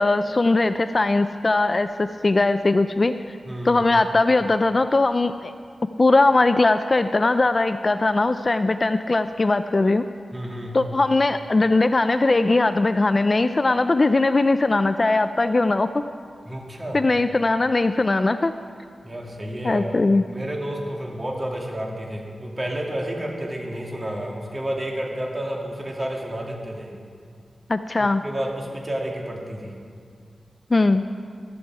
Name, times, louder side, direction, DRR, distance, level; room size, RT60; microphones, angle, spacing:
voice 1, 0.0-3.4 3.6-5.5 6.0-10.0 10.7-16.0 16.9-18.5 19.6-20.2 27.7-28.2 30.7-31.0, left 2 dB, 35° left, 10 dB, 0.3 m, -20 dB
voice 2, 3.5-3.8 10.3-10.8 16.5-17.0 19.0-20.0 20.3-26.9 28.0-29.7, right 1 dB, 25° right, -1 dB, 2.2 m, -30 dB
15.0 x 11.5 x 4.8 m, 2.2 s
wide cardioid pair, 125°, 0 cm